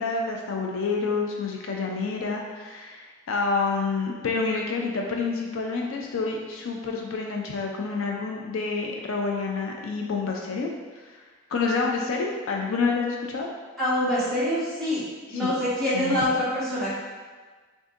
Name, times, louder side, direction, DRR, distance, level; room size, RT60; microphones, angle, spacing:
voice 1, 0.0-10.7 11.0-11.2 11.5-13.5 15.3-15.5 15.9-16.2, left 4 dB, 70° left, 0 dB, 0.4 m, -28 dB
voice 2, 13.8-15.0 15.3-17.0, left 1 dB, ahead, -12 dB, 1.4 m, -25 dB
6.2 x 2.6 x 2.4 m, 1.4 s
head